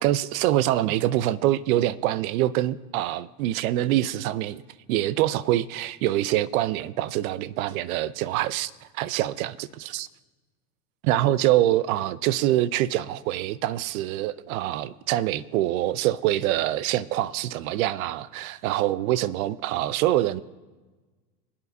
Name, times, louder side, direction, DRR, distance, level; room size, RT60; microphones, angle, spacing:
voice 1, 0.0-4.6 4.9-10.1 11.0-20.4, right 14 dB, 70° right, 0.6 m, -25 dB
25.0 x 8.6 x 2.7 m
hypercardioid pair, 100°, 44 cm